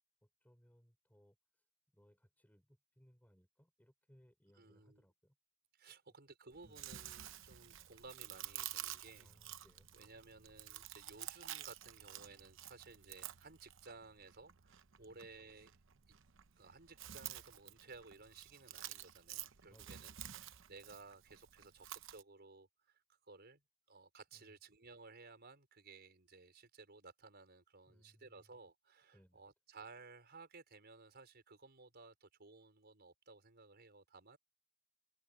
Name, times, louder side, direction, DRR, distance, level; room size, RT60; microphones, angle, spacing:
voice 1, 0.2-1.6 1.9-5.4 5.9-6.1 6.6-6.9 9.2-10.0 15.0-15.3 19.6-20.3 24.3-24.5 27.9-28.5 29.1-29.4, equal, 10° left, 5.3 m, -68 dB
voice 2, 4.6-5.0 5.7-9.3 9.9-15.7 16.6-23.6 23.9-34.4, right 4 dB, 50° right, 5.3 m, -58 dB
Chewing mastication, 6.5-22.2, right 12 dB, 65° right, 0.8 m, -51 dB
head